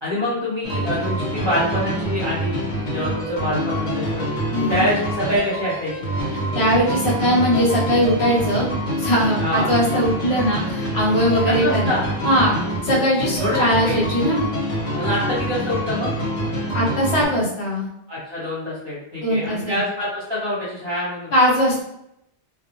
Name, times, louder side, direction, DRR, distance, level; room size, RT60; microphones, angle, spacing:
voice 1, 0.0-2.6 2.9-4.2 4.7-6.1 9.4-9.7 11.4-12.0 13.4-14.0 14.9-16.2 18.1-21.3, left 1 dB, 25° right, -9 dB, 0.8 m, -25 dB
sound 1, 0.6-17.3, right 1 dB, 40° left, 1.0 m, -26 dB
voice 2, 4.5-4.8 6.5-8.7 9.0-11.9 12.2-12.6 12.8-14.4 16.7-17.9 19.2-19.8 21.3-21.8, equal, 70° left, -4 dB, 1.0 m, -20 dB
2.1 x 2.0 x 2.9 m, 0.79 s
omnidirectional pair, 1.2 m